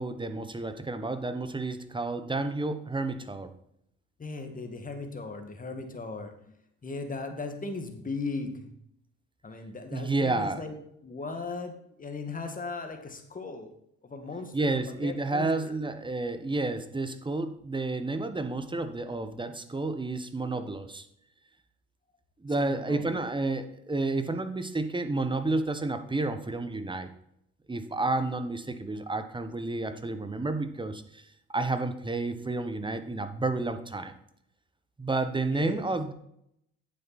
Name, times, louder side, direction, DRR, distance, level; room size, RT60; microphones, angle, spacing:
voice 1, 0.0-3.5 9.9-10.6 14.5-21.1 22.4-27.1 27.7-31.2 31.5-34.1 35.0-36.1, right 2 dB, 15° right, 10 dB, 1.2 m, -30 dB
voice 2, 4.2-8.7 9.4-10.8 11.0-13.7 14.0-15.8 22.6-23.2 35.5-35.8, left 3 dB, 25° left, 6 dB, 2.1 m, -38 dB
9.2 x 7.4 x 4.2 m, 0.75 s
supercardioid pair, 70°, 30 cm